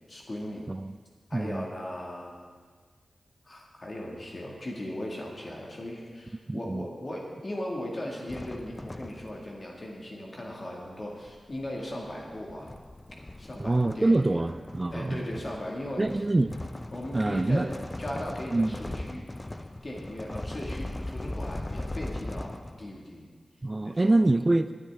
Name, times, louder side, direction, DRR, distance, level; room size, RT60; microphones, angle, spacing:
voice 1, 0.1-0.7 1.3-2.4 3.4-12.7 13.4-14.5 14.9-16.2 16.9-17.7 18.0-19.2 19.5-22.5 22.8-23.3 23.8-24.3, left 1 dB, 45° left, -2 dB, 2.0 m, -38 dB
voice 2, 1.3-1.6 6.5-6.8 13.6-15.3 16.0-16.6 17.1-17.7 18.5-18.8 23.6-24.7, right 2 dB, 30° right, 11 dB, 0.4 m, -25 dB
sound 1, 8.3-9.6 10.8-23.0, left 1 dB, 25° left, 0.5 m, -39 dB
18.5 x 9.2 x 3.6 m, 1.5 s
cardioid pair, 50°, 0 cm